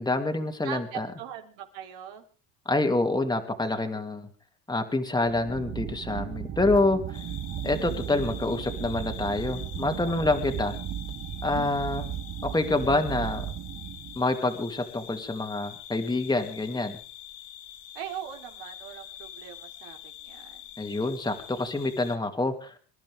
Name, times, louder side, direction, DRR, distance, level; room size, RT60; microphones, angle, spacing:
voice 1, 0.0-1.1 2.7-4.3 4.7-7.2 7.6-10.7 11.4-12.0 12.4-13.5 14.1-17.0 20.8-22.8, left 2 dB, 10° left, 5 dB, 2.5 m, -27 dB
voice 2, 0.6-2.2 10.0-10.4 17.9-20.6, right 10 dB, 70° right, 4 dB, 3.6 m, -41 dB
sound 1, 5.2-14.3, right 12 dB, 35° right, 0.7 m, -35 dB
sound 2, 7.1-22.2, left 12 dB, 75° left, 2.6 m, -45 dB
26.5 x 12.0 x 3.6 m, 0.38 s
supercardioid pair, 110°, 48 cm